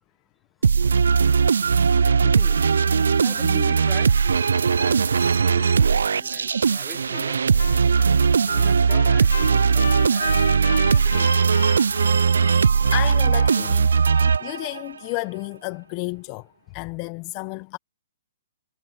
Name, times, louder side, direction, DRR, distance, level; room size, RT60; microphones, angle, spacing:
sound 1, 0.6-14.9, right 6 dB, 75° right, 0.5 m, -19 dB
voice 1, 2.2-2.6 3.2-4.2 4.6-5.7 6.1-7.4 8.5-10.4 10.7-11.3, left 1 dB, ahead, 3.1 m, -42 dB
Trumpet, 7.1-7.3 7.6-13.8, left 6 dB, 75° left, 0.7 m, -34 dB
voice 2, 12.9-17.8, left 27 dB, 35° left, 1.1 m, -32 dB
hypercardioid pair, 135°, 0 cm